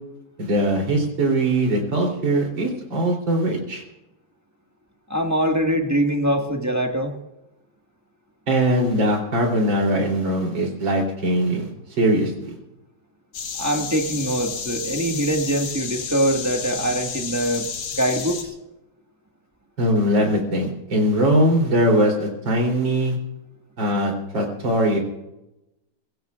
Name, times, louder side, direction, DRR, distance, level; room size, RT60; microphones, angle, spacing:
voice 1, 0.4-3.8 8.5-11.7 12.0-12.5 19.8-23.2 23.8-25.0, right 1 dB, 70° right, 1 dB, 4.1 m, -21 dB
voice 2, 5.1-7.1 13.6-18.5, right 1 dB, 10° right, 2 dB, 1.4 m, -23 dB
sound 1, 13.3-18.4, left 6 dB, 90° left, 2.2 m, -31 dB
23.5 x 16.0 x 2.4 m, 0.92 s
omnidirectional pair, 2.2 m